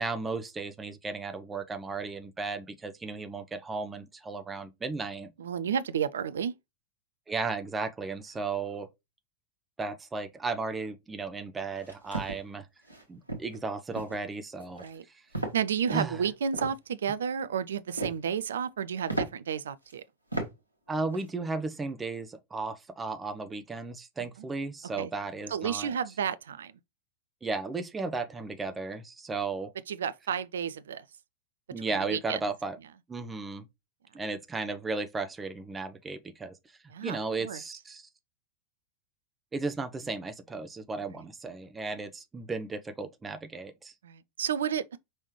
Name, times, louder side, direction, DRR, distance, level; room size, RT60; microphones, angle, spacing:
voice 1, 0.0-5.3 7.3-8.9 9.8-12.7 13.1-14.9 15.9-16.2 20.9-25.9 27.4-29.7 31.7-32.8 33.1-33.7 34.1-36.5 37.0-38.1 39.5-43.9, right 3 dB, 15° right, 0.7 m, -35 dB
voice 2, 5.4-6.5 14.8-15.0 15.5-20.0 25.0-25.1 25.5-26.7 29.9-31.0 31.8-32.4 36.9-37.6 41.1-41.2 44.0-45.0, right 8 dB, 65° right, 0.4 m, -31 dB
sound 1, 11.8-12.4 12.9-13.0 13.3-13.6 13.9-14.2 14.6-15.0 15.3-15.6 15.9-16.7 17.7-18.2 18.7-18.8 19.1-19.3 19.9-20.0 20.3-20.5 20.9-21.2, right 2 dB, 85° right, 1.4 m, -35 dB
5.4 x 3.2 x 3.1 m
figure-of-eight pair, 90°, 0 cm